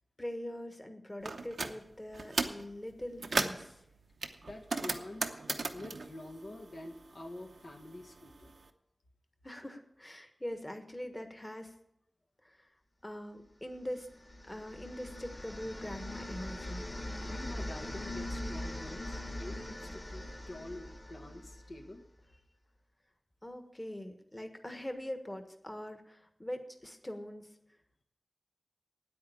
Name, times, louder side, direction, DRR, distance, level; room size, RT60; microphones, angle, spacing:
voice 1, 0.2-3.8 9.4-11.7 12.4-12.7 13.0-14.1 14.5-16.9 23.4-27.5, left 1 dB, 20° left, 7 dB, 1.3 m, -42 dB
sound 1, 1.2-1.7 2.1-2.6 3.0-3.7 4.2-7.1 7.4-8.5, right 3 dB, 90° right, 0.8 m, -35 dB
voice 2, 4.4-5.3 5.7-8.5 17.3-22.0 22.3-22.4, left 1 dB, 75° left, 2 dB, 1.6 m, -47 dB
sound 2, 13.9-21.9, left 1 dB, 35° left, 1.8 m, -42 dB
9.4 x 8.6 x 8.5 m, 0.81 s
wide cardioid pair, 65°, 0 cm